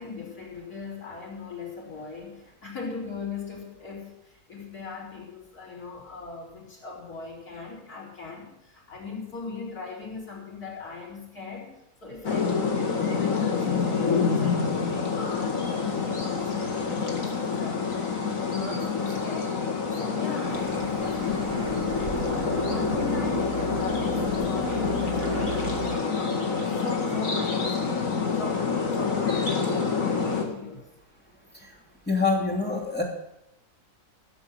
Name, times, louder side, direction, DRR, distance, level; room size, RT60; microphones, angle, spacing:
voice 1, 0.0-18.0 18.4-19.6 20.0-27.9 28.4-29.9 30.2-30.9, left 5 dB, 75° left, -5 dB, 4.9 m, -39 dB
sound 1, 12.2-30.4, left 5 dB, 60° left, 2.4 m, -27 dB
sound 2, 20.5-26.0, right 5 dB, 50° right, 1.5 m, -35 dB
voice 2, 32.1-33.0, left 4 dB, 5° left, -2 dB, 2.8 m, -25 dB
14.5 x 7.1 x 8.0 m, 0.84 s
omnidirectional pair, 1.6 m